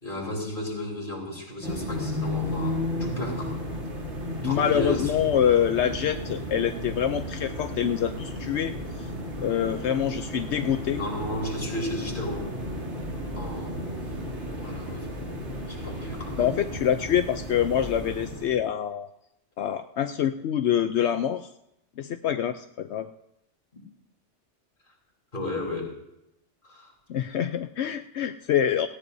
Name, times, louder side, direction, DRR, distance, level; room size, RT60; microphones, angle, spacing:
voice 1, 0.0-3.5 4.4-5.1 10.9-12.5 13.4-14.0 14.6-16.6 25.3-25.9 26.6-26.9, left 1 dB, 45° left, -1 dB, 3.8 m, -34 dB
sound 1, 1.6-18.6, equal, 80° right, 3.0 m, -34 dB
voice 2, 4.4-8.7 9.0-9.1 9.4-11.0 16.4-19.1 19.6-21.5 22.0-23.1 27.1-28.9, left 9 dB, 75° left, 8 dB, 0.9 m, -25 dB
18.5 x 17.0 x 2.7 m, 0.84 s
omnidirectional pair, 1.2 m